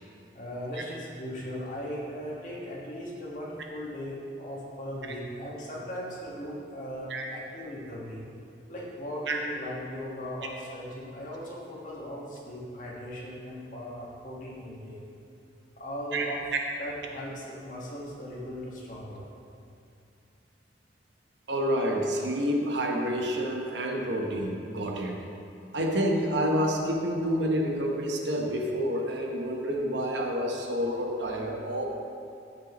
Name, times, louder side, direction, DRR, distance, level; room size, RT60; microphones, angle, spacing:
voice 1, 0.3-8.2 8.7-15.0 15.8-16.4 16.8-19.2, equal, 45° left, -5 dB, 1.6 m, -38 dB
voice 2, 21.5-25.2 25.7-31.8, equal, 80° right, 1 dB, 1.0 m, -28 dB
14.0 x 5.4 x 3.0 m, 2.5 s
head